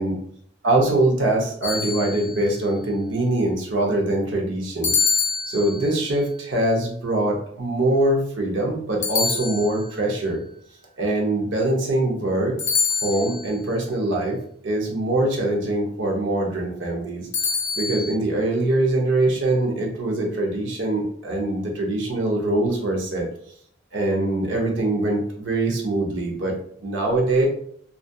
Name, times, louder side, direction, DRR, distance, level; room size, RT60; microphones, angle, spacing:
voice 1, 0.6-4.9 5.5-10.4 11.0-12.6 13.0-14.4 14.6-17.3 17.8-23.3 23.9-26.5 26.8-27.5, right 1 dB, 70° right, 0 dB, 0.6 m, -23 dB
sound 1, 1.6-2.5 4.8-6.1 9.0-10.1 12.6-13.6 17.3-18.1, left 5 dB, 60° left, 0.6 m, -25 dB
2.6 x 2.3 x 2.2 m, 0.64 s
head